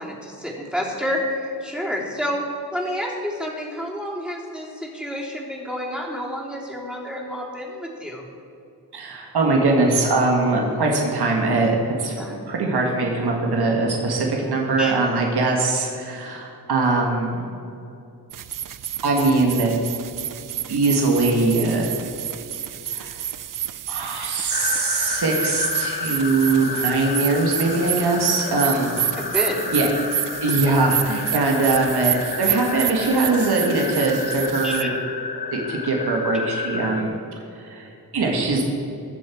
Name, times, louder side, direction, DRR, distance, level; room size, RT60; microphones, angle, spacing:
voice 1, 0.0-2.4 2.7-8.3 12.2-12.4 14.8-14.9 29.2-29.8 34.6-34.9, equal, ahead, -3 dB, 3.4 m, -29 dB
voice 2, 8.9-11.7 12.0-12.1 12.5-17.5 19.0-19.7 20.7-21.9 22.9-23.2 23.9-29.0 29.7-29.9 30.4-34.9 35.5-37.1 37.6-38.7, right 3 dB, 80° right, 0 dB, 2.0 m, -21 dB
sound 1, 18.3-34.8, right 10 dB, 55° right, 0.5 m, -29 dB
sound 2, 24.5-37.0, left 5 dB, 70° left, 1.1 m, -31 dB
22.0 x 7.3 x 4.6 m, 2.7 s
cardioid pair, 80°, 39 cm